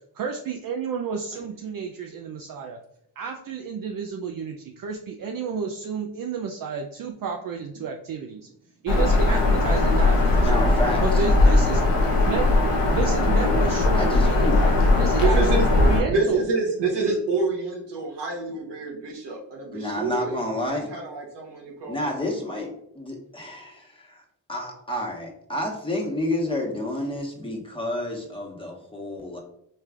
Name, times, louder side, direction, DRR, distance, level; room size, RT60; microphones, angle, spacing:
voice 1, 0.1-2.8 3.2-8.5 8.8-10.6 11.0-11.8 12.2-12.5 12.9-16.4, right 5 dB, 55° right, 3 dB, 0.5 m, -31 dB
Bird vocalization bird call bird song, 8.9-16.0, left 2 dB, 85° left, 1.0 m, -19 dB
voice 2, 10.4-11.2 14.0-14.6 19.7-20.9 21.9-24.2 24.5-29.4, left 1 dB, 10° left, -1 dB, 1.2 m, -30 dB
voice 3, 15.2-15.6 16.1-20.4 20.7-22.4, right 3 dB, 70° right, 0 dB, 1.1 m, -27 dB
4.6 x 3.2 x 2.4 m, 0.74 s
cardioid pair, 55°, 42 cm